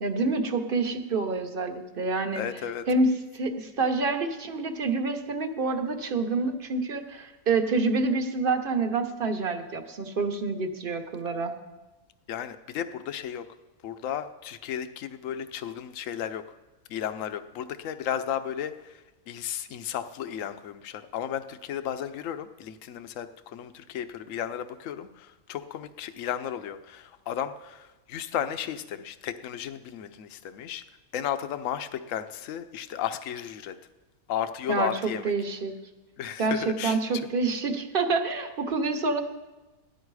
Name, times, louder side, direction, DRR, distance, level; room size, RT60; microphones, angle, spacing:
voice 1, 0.0-2.4 2.9-11.5 34.7-35.7 36.4-39.2, right 3 dB, 40° right, 7 dB, 1.1 m, -27 dB
voice 2, 2.3-2.8 12.3-13.4 13.8-16.6 16.9-30.8 31.1-33.8 34.3-35.3 36.2-37.0, left 9 dB, 65° left, 11 dB, 1.0 m, -34 dB
16.0 x 11.5 x 4.8 m, 1.2 s
omnidirectional pair, 1.6 m